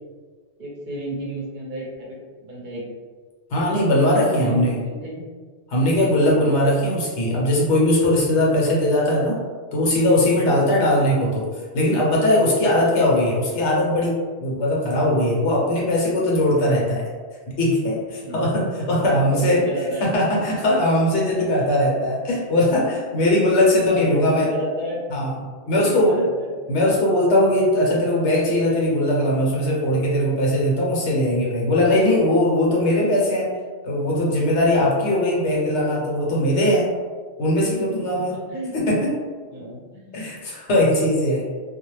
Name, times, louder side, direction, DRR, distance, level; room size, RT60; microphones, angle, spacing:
voice 1, 0.6-2.2 2.4-2.9 3.9-5.2 6.1-6.6 10.4-10.8 12.7-12.8 14.5-14.7 18.2-18.5 19.0-20.3 23.4-25.1 25.6-26.6 38.1-38.8 39.5-40.2, equal, 50° right, -4 dB, 0.7 m, -32 dB
voice 2, 3.5-4.8 5.7-9.4 9.7-11.4 11.7-17.0 17.6-19.6 20.0-24.5 25.1-25.3 25.7-26.2 26.7-33.5 33.8-36.9 37.4-38.3 38.7-39.1 40.1-41.4, left 1 dB, 75° left, -3 dB, 1.0 m, -20 dB
2.3 x 2.0 x 3.0 m, 1.5 s
omnidirectional pair, 1.2 m